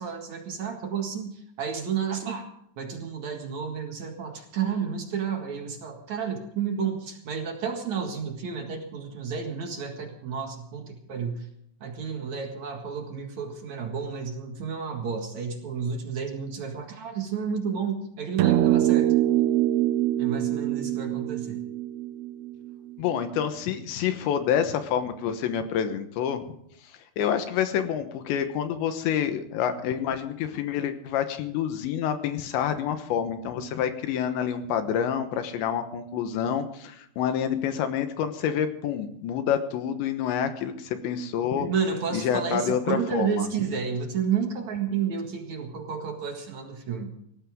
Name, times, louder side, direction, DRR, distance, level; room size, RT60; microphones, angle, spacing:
voice 1, 0.0-2.4 2.8-11.5 11.8-19.1 20.2-21.6 41.5-47.1, right 6 dB, 55° right, 4 dB, 2.3 m, -31 dB
sound 1, 18.4-22.9, right 13 dB, 80° right, 2.9 m, -24 dB
voice 2, 23.0-26.5 27.2-41.7 42.1-43.5, left 8 dB, 75° left, 8 dB, 3.3 m, -28 dB
18.5 x 15.5 x 3.7 m, 0.72 s
omnidirectional pair, 5.4 m